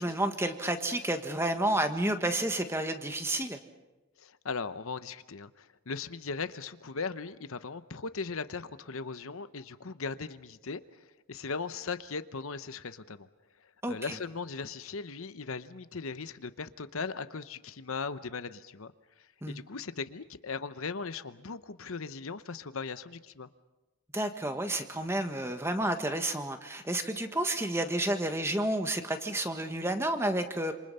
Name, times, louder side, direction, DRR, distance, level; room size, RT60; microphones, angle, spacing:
voice 1, 0.0-3.6 13.8-14.2 19.4-19.6 24.1-30.7, right 1 dB, 10° right, 7 dB, 1.5 m, -30 dB
voice 2, 4.2-13.3 13.9-18.9 19.2-23.5, left 4 dB, 70° left, 12 dB, 0.9 m, -38 dB
27.5 x 27.5 x 5.6 m, 1.1 s
head